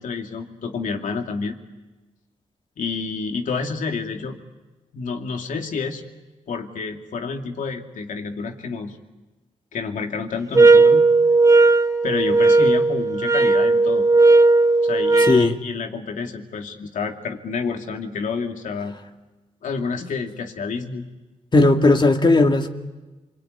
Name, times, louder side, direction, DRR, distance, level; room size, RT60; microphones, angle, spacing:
voice 1, 0.0-1.6 2.8-4.4 4.9-6.0 6.5-9.0 9.7-11.1 12.0-14.1 14.8-19.0 19.6-21.0, left 5 dB, 80° left, 2.7 m, -29 dB
sound 1, 10.5-15.5, right 3 dB, 25° right, 0.9 m, -15 dB
voice 2, 15.2-15.6 21.5-22.7, left 2 dB, 35° left, 2.3 m, -16 dB
28.0 x 22.5 x 9.5 m
cardioid pair, 85°, 13 cm